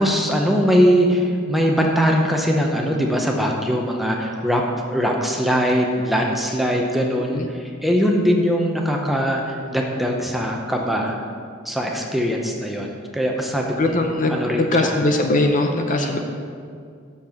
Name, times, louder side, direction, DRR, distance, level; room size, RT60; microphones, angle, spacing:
voice 1, 0.0-4.6 4.9-11.2 11.6-13.9 14.3-15.0 16.0-16.2, equal, ahead, 0 dB, 0.7 m, -21 dB
voice 2, 13.8-16.2, left 2 dB, 40° left, 4 dB, 0.6 m, -20 dB
6.7 x 6.0 x 7.1 m, 2.2 s
head